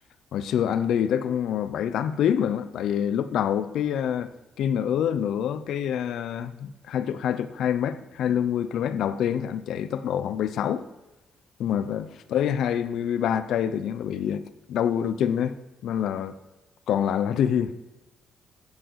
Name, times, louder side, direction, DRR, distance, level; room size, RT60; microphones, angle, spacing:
voice 1, 0.3-4.3 4.6-10.8 11.6-15.6 15.8-16.4 16.9-17.8, left 9 dB, 75° left, 0.7 m, -26 dB
14.5 x 8.3 x 4.7 m
cardioid pair, 90°, 0 cm